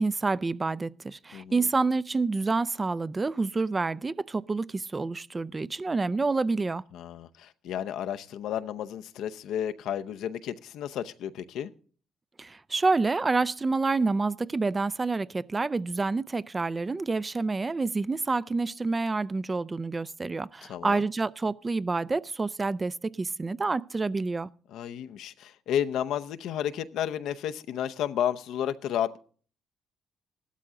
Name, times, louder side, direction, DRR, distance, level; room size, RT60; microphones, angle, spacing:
voice 1, 0.0-6.8 12.4-24.5, right 3 dB, 30° right, 0.5 m, -28 dB
voice 2, 1.3-1.7 6.9-11.7 20.7-21.1 24.7-29.2, left 10 dB, 80° left, 0.7 m, -32 dB
15.0 x 12.5 x 3.7 m
supercardioid pair, 65°, 0 cm